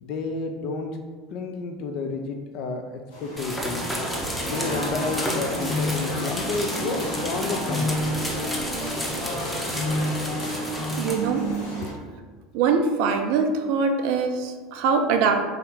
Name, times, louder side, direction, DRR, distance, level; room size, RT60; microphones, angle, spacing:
voice 1, 0.0-1.0 1.3-3.9 4.4-8.0 11.8-12.1, left 3 dB, 55° left, 4 dB, 0.4 m, -31 dB
sound 1, 3.1-11.9, equal, 75° left, 1.2 m, -29 dB
sound 2, 3.4-11.1, equal, 10° left, 0.8 m, -32 dB
voice 2, 11.0-11.5 12.5-15.4, right 5 dB, 60° right, 6 dB, 0.4 m, -23 dB
3.6 x 2.8 x 3.4 m, 1.4 s
figure-of-eight pair, 70°, 0 cm